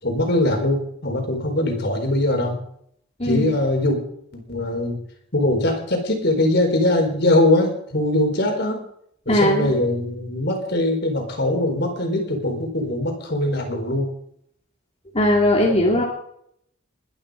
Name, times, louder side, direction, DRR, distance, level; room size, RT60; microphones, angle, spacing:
voice 1, 0.0-2.6 3.2-4.0 4.3-5.0 5.3-8.8 9.3-14.1, left 1 dB, 55° left, 3 dB, 4.6 m, -21 dB
voice 2, 3.2-3.5 9.3-9.7 15.1-16.0, left 1 dB, 30° left, -2 dB, 2.9 m, -18 dB
21.5 x 11.0 x 5.2 m, 0.69 s
head